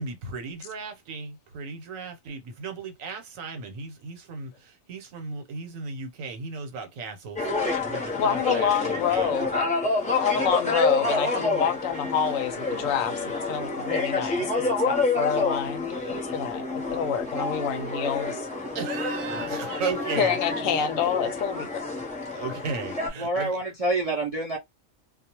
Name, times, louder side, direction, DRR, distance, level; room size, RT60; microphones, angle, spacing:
voice 1, 0.0-7.5 7.8-9.3 18.7-20.4 22.3-23.6, right 4 dB, 80° right, 1.2 m, -35 dB
sound 1, 7.4-23.1, left 3 dB, 5° left, 0.7 m, -28 dB
voice 2, 8.2-9.8 10.2-18.5 19.3-19.6 20.2-21.8, left 7 dB, 80° left, 0.9 m, -28 dB
voice 3, 23.2-24.6, right 2 dB, 50° right, 0.4 m, -27 dB
2.3 x 2.2 x 2.8 m
omnidirectional pair, 1.4 m